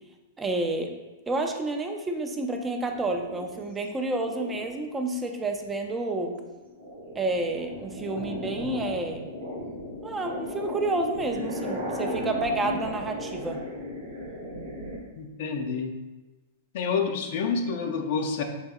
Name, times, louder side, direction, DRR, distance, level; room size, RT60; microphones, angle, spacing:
voice 1, 0.4-0.9 1.3-6.3 7.2-9.3 10.0-13.6, right 2 dB, 15° right, 4 dB, 0.4 m, -29 dB
sound 1, 2.8-4.8 5.4-5.8 6.2-15.0, left 1 dB, 80° right, 0.9 m, -36 dB
voice 2, 15.2-16.0 16.7-18.4, left 5 dB, 60° left, 4 dB, 0.4 m, -28 dB
4.9 x 2.6 x 2.3 m, 1.2 s
hypercardioid pair, 110°, 0 cm